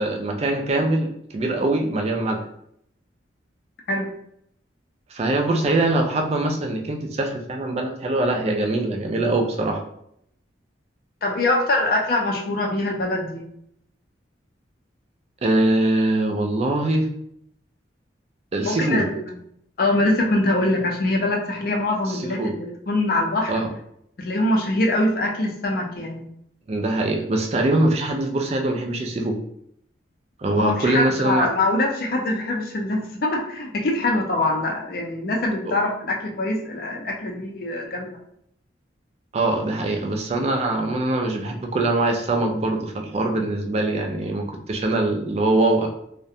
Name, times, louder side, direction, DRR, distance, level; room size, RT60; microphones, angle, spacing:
voice 1, 0.0-2.4 5.1-9.8 15.4-17.1 18.5-19.1 22.1-22.5 23.5-23.7 26.7-29.4 30.4-31.5 35.6-35.7 39.3-45.9, right 2 dB, 35° right, 3 dB, 0.3 m, -23 dB
voice 2, 11.2-13.4 18.6-19.4 19.8-23.6 24.2-26.2 30.6-38.2, left 2 dB, 50° left, 1 dB, 0.4 m, -23 dB
2.4 x 2.1 x 2.7 m, 0.72 s
head